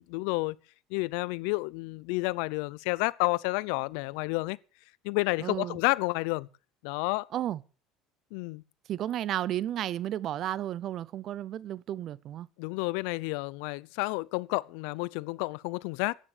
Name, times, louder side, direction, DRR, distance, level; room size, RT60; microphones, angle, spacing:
voice 1, 0.1-0.6 0.9-4.6 5.0-6.5 6.8-7.3 8.3-8.6 12.6-16.2, left 24 dB, 80° left, 0.6 m, -30 dB
voice 2, 5.4-5.8 7.3-7.6 8.9-12.5, right 12 dB, 50° right, 0.7 m, -33 dB
14.5 x 10.0 x 6.8 m
supercardioid pair, 115°, 0 cm